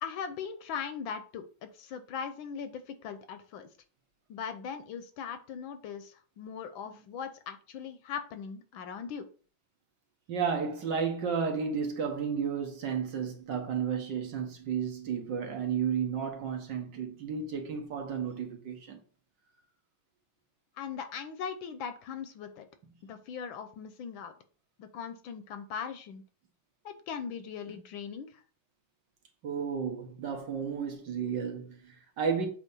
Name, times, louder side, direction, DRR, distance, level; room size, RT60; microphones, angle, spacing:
voice 1, 0.0-3.7 4.3-9.3 20.8-22.7 23.0-24.3 24.8-26.2 26.8-28.4, left 7 dB, 70° left, 1.4 m, -39 dB
voice 2, 10.3-19.0 29.4-32.5, right 6 dB, 60° right, 1.7 m, -32 dB
8.1 x 2.9 x 5.4 m
omnidirectional pair, 2.4 m